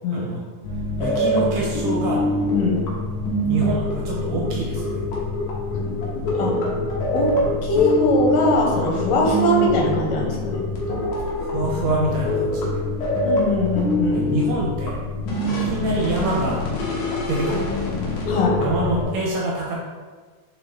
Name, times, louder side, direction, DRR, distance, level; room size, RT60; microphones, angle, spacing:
sound 1, 0.6-19.0, left 1 dB, 65° left, 2.1 m, -24 dB
voice 1, 1.0-2.2 3.5-5.0 11.2-12.8 14.1-15.0 15.5-16.6 17.3-17.8 18.6-19.7, right 1 dB, 70° right, -3 dB, 2.2 m, -26 dB
voice 2, 7.6-10.6 10.9-11.0 13.2-14.2 18.3-18.6, left 2 dB, 80° left, -1 dB, 3.1 m, -21 dB
6.8 x 4.0 x 3.4 m, 1.4 s
omnidirectional pair, 4.5 m